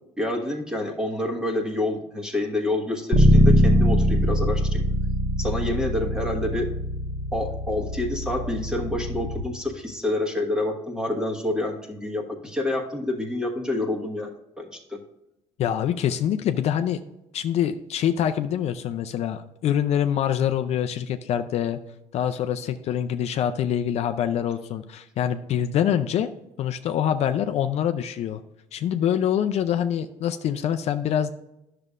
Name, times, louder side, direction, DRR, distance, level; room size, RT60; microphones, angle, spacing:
voice 1, 0.2-4.8 5.4-6.7 7.3-15.0, left 1 dB, 5° right, 2 dB, 1.3 m, -28 dB
Bass guitar, 3.1-9.4, equal, 40° right, 1.4 m, -22 dB
voice 2, 15.6-17.0 17.3-21.8 22.1-26.3 26.6-28.4 28.7-31.3, left 9 dB, 60° left, 8 dB, 0.4 m, -25 dB
11.0 x 6.6 x 2.4 m, 0.87 s
cardioid pair, 135°, 13 cm